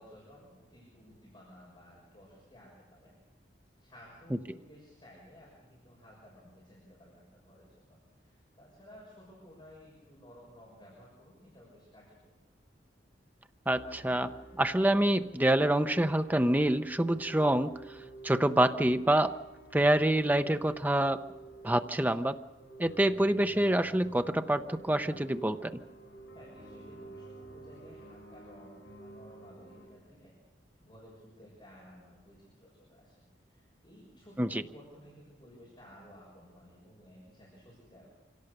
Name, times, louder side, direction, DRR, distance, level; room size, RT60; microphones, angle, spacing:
voice 1, 0.0-3.1 3.8-12.3 26.3-30.3 30.8-38.1, equal, 25° left, -5 dB, 6.5 m, -55 dB
sound 1, 13.7-29.9, right 2 dB, 80° left, 7.3 m, -51 dB
voice 2, 13.7-14.3 14.6-17.7 18.2-19.4 19.7-21.2 21.6-22.4 22.8-25.8 34.4-34.6, right 1 dB, 10° right, 10 dB, 0.6 m, -26 dB
25.5 x 17.0 x 6.7 m, 1.1 s
head